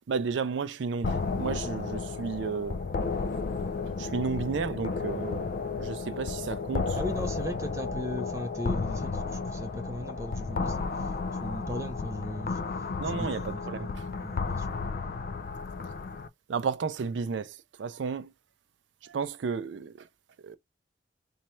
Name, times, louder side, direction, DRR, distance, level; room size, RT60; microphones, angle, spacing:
voice 1, 0.1-2.8 4.0-5.5 5.8-7.0 13.0-14.1 15.8-16.1 16.5-18.3 19.0-20.1 20.4-20.6, right 5 dB, 80° right, 0.4 m, -33 dB
sound 1, 1.0-16.3, left 4 dB, 50° left, 0.3 m, -33 dB
voice 2, 7.0-12.6 13.1-14.7, equal, 15° right, 0.5 m, -37 dB
3.1 x 2.3 x 4.2 m
head